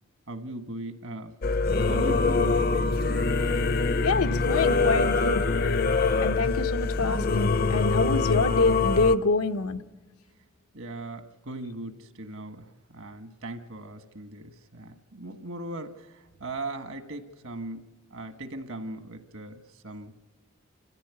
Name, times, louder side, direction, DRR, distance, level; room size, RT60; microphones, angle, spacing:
voice 1, 0.3-1.3 1.9-3.0 10.7-20.1, right 2 dB, 70° right, 7 dB, 1.5 m, -38 dB
Singing / Musical instrument, 1.4-9.2, left 3 dB, 45° left, 0.6 m, -24 dB
voice 2, 4.0-5.4 6.2-9.8, left 3 dB, 90° left, 7 dB, 1.0 m, -26 dB
27.5 x 14.5 x 8.4 m, 1.3 s
head